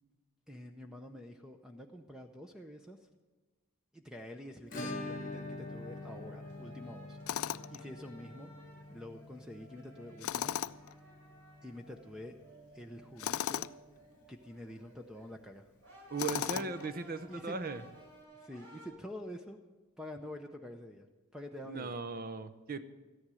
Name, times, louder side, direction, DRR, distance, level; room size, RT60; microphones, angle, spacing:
voice 1, 0.5-3.1 3.9-7.2 7.7-8.5 8.9-10.5 11.6-12.3 12.7-13.7 14.3-15.7 16.5-16.7 17.3-17.6 18.3-19.6 20.0-21.1 21.3-22.0, left 1 dB, 5° right, 4 dB, 0.6 m, -47 dB
Acoustic guitar / Strum, 4.7-13.3 13.6-13.7 14.0-14.1 14.4-14.5 16.6-16.7 17.8-17.9, left 2 dB, 40° left, 1.1 m, -46 dB
sound 1, 5.1-18.9, right 1 dB, 90° right, 5.9 m, -58 dB
Tools, 7.3-7.8 10.2-10.9 13.2-13.8 16.2-16.9, left 10 dB, 70° left, 0.3 m, -36 dB
voice 2, 16.1-17.8 21.7-22.8, right 3 dB, 40° right, 11 dB, 0.7 m, -38 dB
14.0 x 10.5 x 6.3 m, 1.2 s
head